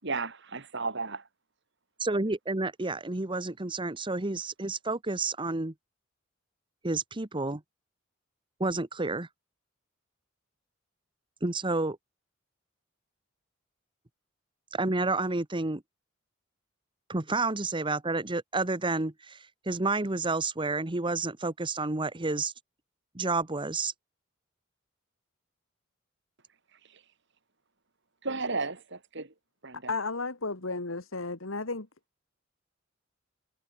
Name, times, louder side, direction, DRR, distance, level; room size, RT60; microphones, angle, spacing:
voice 1, 0.0-1.3 26.7-27.0 28.2-29.3 29.6-29.9, right 3 dB, 60° right, 4.9 m, -34 dB
voice 2, 2.0-5.7 6.8-7.6 8.6-9.3 11.4-12.0 14.7-15.8 17.1-19.4 19.7-22.5 23.1-23.9, right 3 dB, 25° right, 1.2 m, -30 dB
voice 3, 29.9-31.9, left 3 dB, 90° left, 2.2 m, -33 dB
head